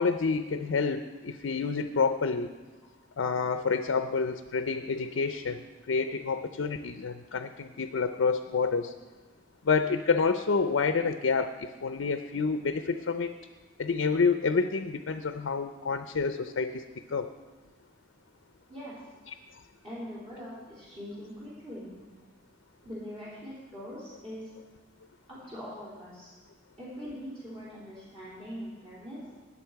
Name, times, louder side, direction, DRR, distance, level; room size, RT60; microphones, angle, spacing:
voice 1, 0.0-2.5 3.2-8.9 9.6-13.3 13.8-16.8 17.1-17.3, left 4 dB, 85° left, 9 dB, 0.5 m, -28 dB
voice 2, 19.8-21.9 22.8-24.5 25.3-26.3 26.8-29.2, equal, 30° right, -9 dB, 3.7 m, -42 dB
19.0 x 7.2 x 4.7 m, 1.3 s
head